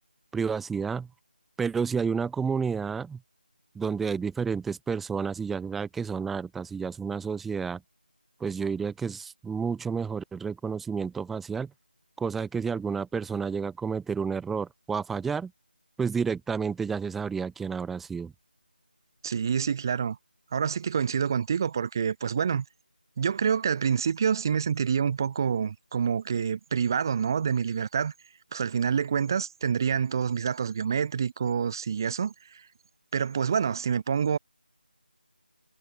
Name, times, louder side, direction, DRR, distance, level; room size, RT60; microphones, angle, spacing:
voice 1, 0.3-1.1 1.6-3.2 3.7-7.8 8.4-11.7 12.2-15.5 16.0-18.3, right 5 dB, ahead, 1.0 m, -30 dB
voice 2, 19.2-20.2 20.5-22.6 23.2-28.1 28.5-32.6 33.1-34.4, right 7 dB, 20° right, 3.3 m, -27 dB
figure-of-eight pair, 170°, 6 cm